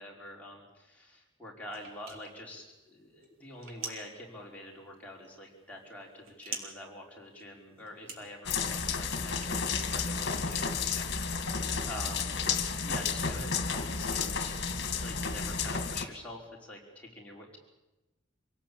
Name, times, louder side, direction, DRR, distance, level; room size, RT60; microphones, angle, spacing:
voice 1, 0.0-11.6 11.8-12.3 12.8-14.7 15.0-17.6, left 1 dB, 5° left, -3 dB, 5.4 m, -46 dB
sound 1, 1.7-10.6, right 4 dB, 80° right, 3.8 m, -47 dB
sound 2, 8.5-16.1, left 5 dB, 55° left, 2.1 m, -32 dB
26.0 x 18.0 x 8.7 m, 1.0 s
head